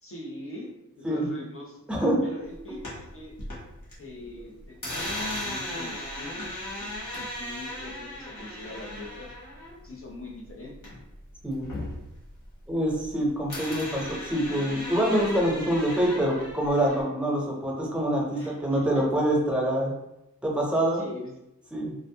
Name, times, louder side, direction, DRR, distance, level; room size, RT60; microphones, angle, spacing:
voice 1, 0.0-1.8 2.2-3.3 4.0-5.1 5.4-9.3 9.8-10.7 18.3-19.0 20.9-21.3, left 2 dB, 45° left, -1 dB, 0.6 m, -42 dB
voice 2, 1.9-2.2 11.4-11.7 12.7-19.9 20.4-21.0 21.7-21.9, right 1 dB, 5° right, -2 dB, 0.6 m, -25 dB
sound 1, 2.5-3.9 4.2-11.2 11.5-13.1 13.5-17.0, left 1 dB, 90° left, 1.0 m, -37 dB
2.5 x 2.0 x 2.6 m, 0.88 s
wide cardioid pair, 85°, 31 cm